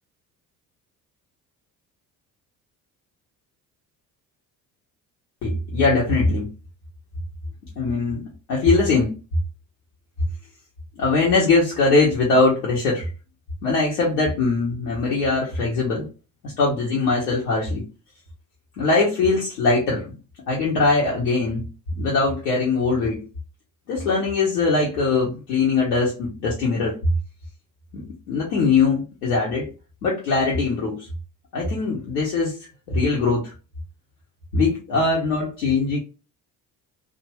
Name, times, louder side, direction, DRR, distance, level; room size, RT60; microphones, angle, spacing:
voice 1, 5.4-6.5 7.8-9.1 11.0-13.1 13.6-16.1 16.4-17.8 18.8-20.1 20.5-21.6 22.0-23.2 23.9-27.0 27.9-29.7 30.0-31.1 31.5-32.5 32.9-33.5 34.5-36.0, left 3 dB, 80° left, -4 dB, 0.9 m, -21 dB
2.6 x 2.4 x 3.0 m, 0.33 s
hypercardioid pair, 50°, 45 cm